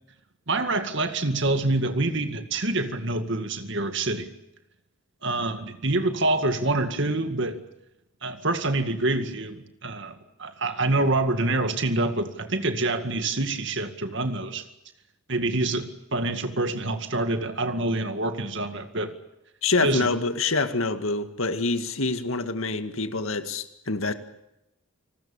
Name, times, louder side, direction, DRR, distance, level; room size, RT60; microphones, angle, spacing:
voice 1, 0.5-4.3 5.2-7.6 8.2-14.6 15.3-19.1 19.8-20.1, right 2 dB, 60° right, 8 dB, 2.1 m, -26 dB
voice 2, 19.6-24.1, left 3 dB, 75° left, 9 dB, 2.0 m, -26 dB
29.5 x 20.0 x 7.3 m, 0.88 s
head